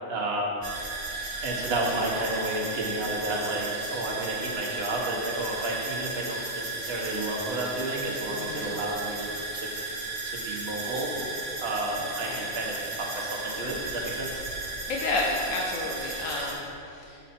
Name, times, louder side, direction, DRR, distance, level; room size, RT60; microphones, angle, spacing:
voice 1, 0.1-0.6 1.4-9.3 9.5-9.7 10.2-11.1 11.6-14.4, right 1 dB, 50° right, -2 dB, 1.3 m, -31 dB
sound 1, 0.6-16.5, right 3 dB, 75° right, 1.7 m, -35 dB
voice 2, 8.4-8.7 12.2-12.5 14.9-17.2, left 2 dB, 75° left, -1 dB, 1.0 m, -31 dB
7.2 x 5.5 x 4.3 m, 2.7 s
omnidirectional pair, 1.4 m